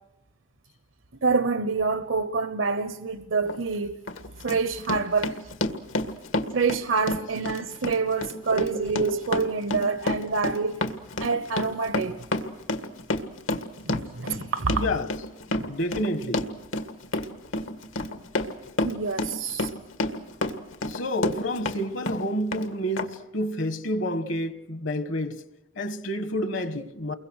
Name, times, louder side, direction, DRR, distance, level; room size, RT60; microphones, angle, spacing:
voice 1, 1.2-4.0 4.4-5.5 6.5-10.8 11.2-12.2 13.8-14.8 18.8-19.7, right 4 dB, 80° right, 1.0 m, -26 dB
Run, 3.5-3.6 4.1-21.8 22.1-22.7 23.0-23.1, left 2 dB, 90° left, 1.8 m, -30 dB
voice 2, 14.6-15.3 15.7-16.6 19.4-19.6 20.8-25.4 25.7-27.1, equal, 70° left, 1.4 m, -29 dB
29.5 x 22.5 x 6.5 m
head